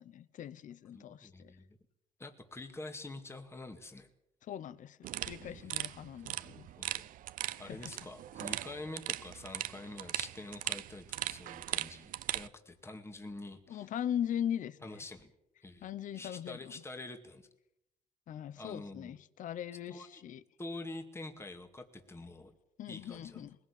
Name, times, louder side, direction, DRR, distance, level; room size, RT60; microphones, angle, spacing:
voice 1, 0.0-1.5 4.5-6.7 7.5-7.8 13.7-15.0 15.8-16.7 18.3-20.4 22.8-23.6, left 10 dB, 65° left, 0.9 m, -40 dB
voice 2, 0.9-1.7 2.2-4.1 5.4-7.1 7.6-13.9 14.8-15.3 15.6-17.5 18.6-19.2 19.9-20.2 20.6-22.5 22.9-23.5, left 2 dB, 20° left, 2.1 m, -47 dB
sound 1, 5.0-12.5, right 13 dB, 80° right, 0.7 m, -39 dB
20.5 x 16.5 x 8.4 m
cardioid pair, 95°, 14 cm